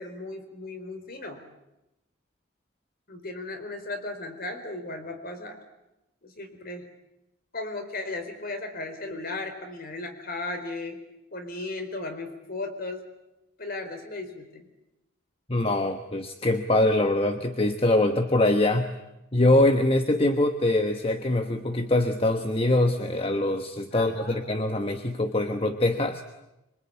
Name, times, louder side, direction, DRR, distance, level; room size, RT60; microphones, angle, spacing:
voice 1, 0.0-1.4 3.1-5.6 6.2-6.8 7.5-11.0 11.3-13.0 13.6-14.7 23.9-24.5, left 2 dB, 45° left, 7 dB, 4.3 m, -36 dB
voice 2, 15.5-18.9 19.3-26.2, left 1 dB, 25° left, 7 dB, 1.2 m, -23 dB
25.5 x 24.5 x 8.8 m, 0.94 s
head